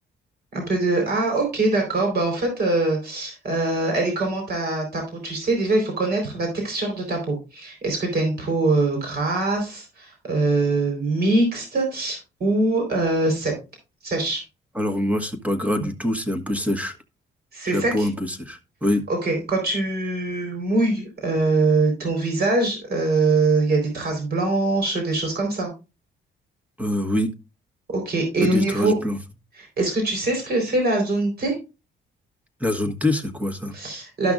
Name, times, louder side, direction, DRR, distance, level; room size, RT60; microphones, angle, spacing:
voice 1, 0.5-13.5 14.0-14.4 17.5-18.1 19.1-25.7 27.9-28.9 29.6-31.6 33.7-34.3, right 2 dB, 50° right, 4.2 m, -23 dB
voice 2, 14.7-16.9 17.7-19.0 26.8-27.3 28.4-29.2 32.6-33.7, left 1 dB, 5° right, 1.3 m, -24 dB
13.0 x 5.9 x 2.5 m
cardioid pair, 90°, 20 cm